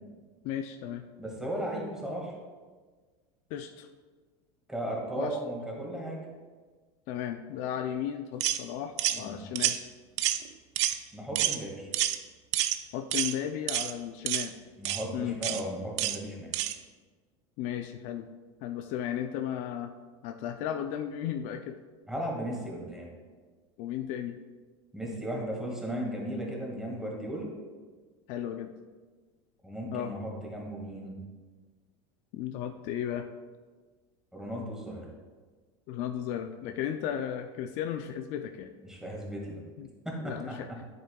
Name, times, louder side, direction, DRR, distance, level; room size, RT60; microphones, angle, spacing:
voice 1, 0.4-1.0 3.5-3.9 5.1-5.4 7.1-9.8 12.9-14.6 15.1-15.4 17.6-18.3 18.6-19.9 20.2-21.8 23.8-24.4 28.3-28.7 29.9-30.1 32.3-33.3 35.9-38.7 39.8-39.9 40.2-40.7, left 10 dB, 55° left, 7 dB, 0.4 m, -35 dB
voice 2, 1.2-2.3 4.7-6.2 9.1-9.4 11.1-11.9 14.8-16.6 22.1-23.1 24.9-27.5 29.6-31.1 34.3-35.1 38.8-39.6 40.1-40.9, right 1 dB, 5° right, -2 dB, 1.9 m, -36 dB
sound 1, 8.4-8.6 9.0-9.2 9.6-9.8 10.2-10.5 10.8-11.0 11.4-11.6 11.9-12.2 12.5-12.8 13.1-13.3 13.7-13.9 14.3-14.5 14.8-15.0 15.4-15.6 16.0-16.2 16.5-16.7, right 13 dB, 75° right, 0.5 m, -28 dB
9.1 x 8.0 x 2.3 m, 1.4 s
supercardioid pair, 125°, 15 cm